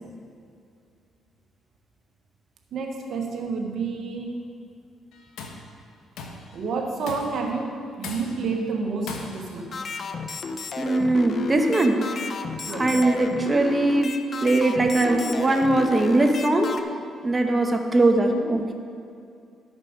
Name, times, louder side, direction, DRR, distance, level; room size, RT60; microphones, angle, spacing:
voice 1, 2.7-4.4 6.5-9.8 12.7-12.9, right 4 dB, 65° right, 2 dB, 1.0 m, -29 dB
Tools, 5.1-5.7 6.2-6.5 7.1-7.5 8.0-8.5 9.1-9.6, left 4 dB, 85° left, 1.0 m, -38 dB
sound 1, 9.7-16.8, left 4 dB, 50° left, 0.6 m, -33 dB
voice 2, 10.8-12.1 12.7-16.8 17.2-18.7, right 2 dB, 25° right, 4 dB, 1.0 m, -21 dB
12.0 x 6.6 x 5.0 m, 2.4 s
cardioid pair, 90°, 0 cm